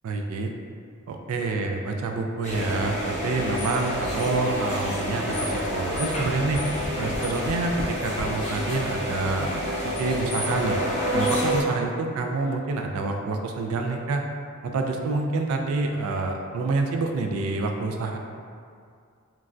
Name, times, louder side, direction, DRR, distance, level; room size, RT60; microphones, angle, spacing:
voice 1, 0.0-0.5 1.1-6.6 7.0-9.7 10.0-10.8 11.1-14.2 14.6-18.2, right 3 dB, 75° right, 3 dB, 0.3 m, -27 dB
sound 1, 2.4-11.6, equal, 30° left, 0.6 m, -28 dB
Tap, 5.3-8.4 9.2-9.3 9.6-9.7, equal, 75° left, 0.4 m, -36 dB
3.1 x 2.2 x 2.5 m, 2.2 s
head